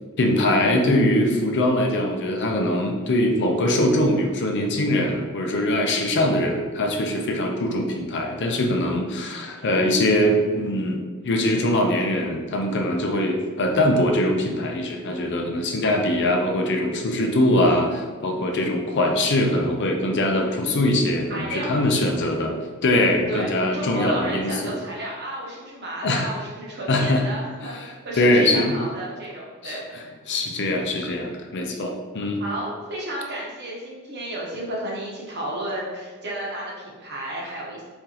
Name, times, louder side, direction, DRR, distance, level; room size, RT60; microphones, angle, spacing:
voice 1, 0.2-24.8 26.0-26.3 26.9-27.2 27.6-28.8 29.6-29.8 30.3-32.4, left 1 dB, 55° left, 3 dB, 0.6 m, -22 dB
voice 2, 21.3-21.7 23.3-29.8 32.4-37.8, right 1 dB, 50° right, -4 dB, 1.2 m, -32 dB
4.3 x 3.8 x 2.9 m, 1.4 s
head